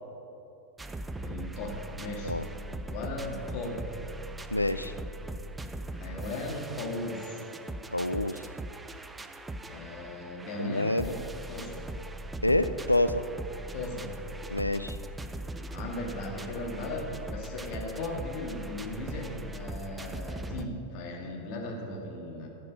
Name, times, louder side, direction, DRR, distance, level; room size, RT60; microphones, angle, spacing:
sound 1, 0.8-20.7, right 1 dB, 10° right, 0.4 m, -40 dB
voice 1, 1.2-2.3 2.9-3.9 5.9-7.4 9.6-11.1 11.5-11.8 13.7-14.1 15.7-22.5, left 2 dB, 45° left, 0 dB, 1.8 m, -37 dB
voice 2, 4.5-4.9 7.9-8.5 10.6-11.1 12.4-13.3 14.5-15.0, left 1 dB, 85° left, 12 dB, 0.3 m, -27 dB
11.0 x 7.5 x 5.5 m, 2.9 s
figure-of-eight pair, 90°, 0 cm